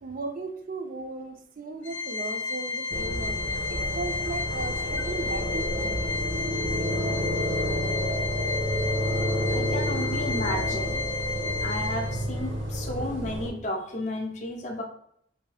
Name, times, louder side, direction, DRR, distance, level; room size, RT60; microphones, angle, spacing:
voice 1, 0.0-3.4 3.7-6.1, right 3 dB, 45° right, 5 dB, 0.4 m, -36 dB
Organ, 1.8-12.4, left 4 dB, 85° left, 0.7 m, -32 dB
sound 1, 2.9-13.5, equal, 80° right, 0.8 m, -30 dB
voice 2, 9.5-11.0 11.6-14.8, left 1 dB, 40° left, 1 dB, 0.5 m, -33 dB
3.0 x 2.6 x 3.2 m, 0.68 s
head